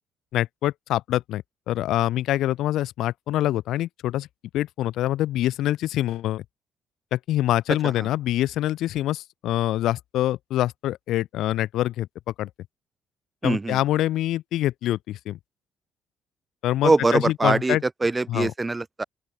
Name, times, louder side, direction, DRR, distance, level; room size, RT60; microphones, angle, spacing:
voice 1, 0.3-4.3 4.5-6.4 7.1-12.1 12.4-12.5 13.4-15.4 16.6-17.8 18.3-18.5, left 14 dB, 70° left, 3.8 m, -25 dB
voice 2, 13.4-13.8 16.8-19.0, right 3 dB, 15° right, 1.6 m, -23 dB
open air
cardioid pair, 160°, 0 cm